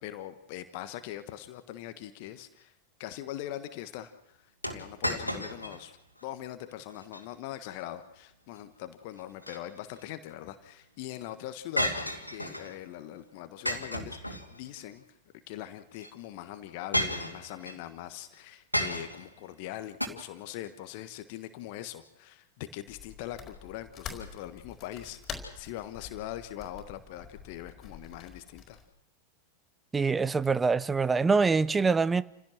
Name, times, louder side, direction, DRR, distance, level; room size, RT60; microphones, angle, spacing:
voice 1, 0.0-2.7 3.0-11.9 12.3-15.0 15.5-28.8, left 13 dB, 45° left, 1.3 m, -42 dB
Throwing Away Glass, 4.6-5.8 6.2-6.3 6.9-7.2 9.2-10.0 11.8-12.7 13.6-14.8 15.9-16.1 16.9-17.8 18.7-19.3 20.0-20.1, equal, 90° left, 2.6 m, -33 dB
sound 1, 22.9-28.9, left 6 dB, 25° left, 4.7 m, -46 dB
voice 2, 29.9-32.2, right 4 dB, 15° right, 0.7 m, -24 dB
29.0 x 16.5 x 6.3 m
figure-of-eight pair, 90°, 0 cm